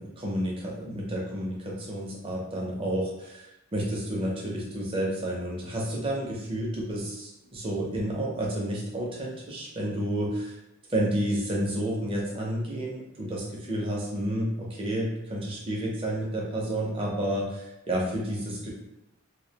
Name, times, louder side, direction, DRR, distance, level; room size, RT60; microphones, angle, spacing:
voice 1, 0.0-10.6 10.9-18.7, right 1 dB, 25° right, -3 dB, 0.4 m, -30 dB
2.3 x 2.0 x 2.7 m, 0.93 s
head